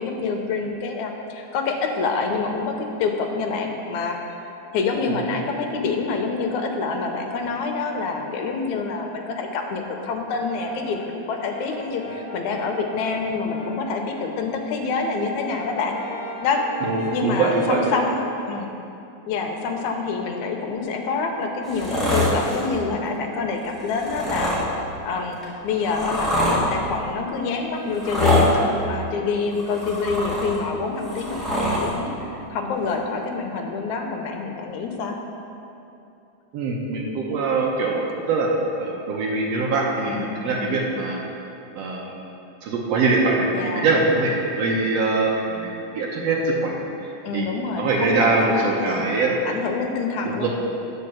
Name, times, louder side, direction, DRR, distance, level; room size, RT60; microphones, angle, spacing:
voice 1, 0.0-4.2 4.7-16.0 16.4-16.6 17.1-18.7 19.3-24.5 25.0-35.2 40.0-40.9 43.5-43.9 47.2-50.5, left 4 dB, 80° left, 3 dB, 2.1 m, -27 dB
Brass instrument, 10.5-13.9 14.3-17.9, left 1 dB, 55° left, 2.1 m, -39 dB
voice 2, 16.8-17.9 36.5-38.5 38.8-41.2 41.8-42.1 42.6-46.7 47.3-47.5 47.8-49.3 50.2-50.5, right 3 dB, 65° right, -2 dB, 1.8 m, -23 dB
sound 1, 21.6-22.7 23.9-24.6 25.4-26.6 27.9-28.5 29.5-30.6 31.0-31.9 32.9-33.0, left 1 dB, ahead, 0.9 m, -23 dB
9.6 x 4.6 x 7.1 m, 2.7 s
omnidirectional pair, 3.4 m